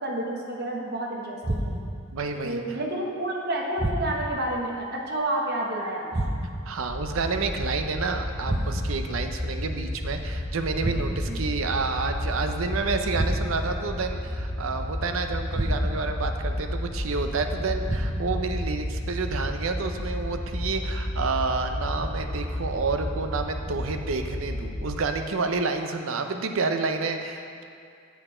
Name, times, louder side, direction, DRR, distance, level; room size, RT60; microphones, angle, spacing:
voice 1, 0.0-1.8 2.4-6.1 11.3-11.4, right 1 dB, 50° right, -1 dB, 1.1 m, -30 dB
sound 1, 1.4-2.1 3.8-4.4 6.1-6.8 8.4-9.1 10.8-11.4 13.1-13.8 15.5-16.2 17.8-18.5, right 1 dB, 30° right, 0.7 m, -29 dB
voice 2, 2.1-2.8 6.7-27.6, right 4 dB, 75° right, 6 dB, 0.6 m, -29 dB
sound 2, 6.9-25.0, left 1 dB, 35° left, 1.0 m, -32 dB
8.1 x 6.7 x 4.3 m, 2.4 s
head